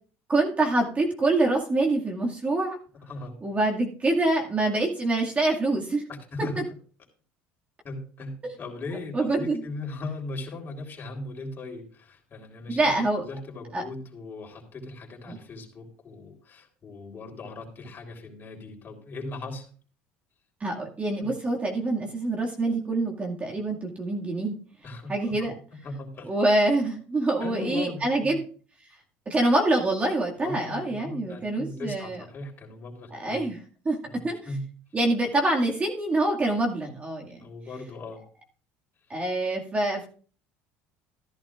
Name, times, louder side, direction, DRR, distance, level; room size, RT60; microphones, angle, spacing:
voice 1, 0.3-2.8 3.4-6.0 6.4-6.6 8.4-8.6 9.1-9.6 12.7-13.2 13.7-13.8 15.3-15.4 20.6-24.6 25.1-25.5 26.3-28.4 29.3-32.2 33.1-33.6 33.9-34.0 34.2-34.4 34.9-37.4 39.1-40.1, right 2 dB, 25° right, 0 dB, 2.1 m, -25 dB
voice 2, 6.1-6.6 7.8-19.7 21.2-21.3 24.8-26.3 27.4-28.4 30.4-33.5 34.0-34.7 37.4-38.2, left 2 dB, 40° left, 1 dB, 3.8 m, -38 dB
14.5 x 11.0 x 2.5 m, 0.41 s
supercardioid pair, 90°, 5 cm